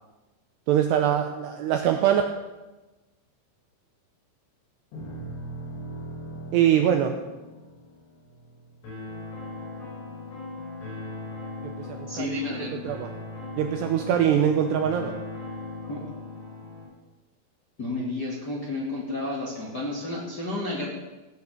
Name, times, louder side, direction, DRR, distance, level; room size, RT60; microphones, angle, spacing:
voice 1, 0.7-2.2 6.5-7.2 11.6-12.3 12.8-13.1 13.6-15.1, right 10 dB, 80° right, 5 dB, 2.5 m, -23 dB
sound 1, 4.9-9.3, right 1 dB, 60° left, 6.3 m, -40 dB
sound 2, 8.8-16.9, left 3 dB, 80° left, 7.7 m, -38 dB
voice 2, 12.1-12.8 15.9-16.0 17.8-20.9, left 2 dB, 30° left, -5 dB, 2.1 m, -31 dB
17.0 x 9.5 x 6.7 m, 1.1 s
omnidirectional pair, 5.7 m